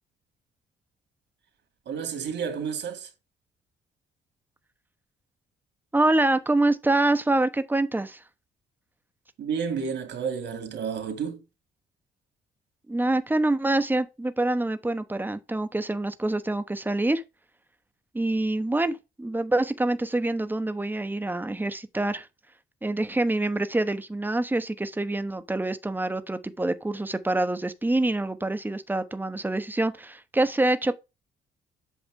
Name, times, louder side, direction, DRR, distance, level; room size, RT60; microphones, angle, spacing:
voice 1, 1.9-3.1 9.4-11.4, right 6 dB, 65° right, 2.6 m, -31 dB
voice 2, 5.9-8.2 12.9-17.2 18.1-22.3 22.8-31.0, right 2 dB, 10° right, 1.0 m, -26 dB
8.3 x 5.7 x 3.7 m
cardioid pair, 90°, 20 cm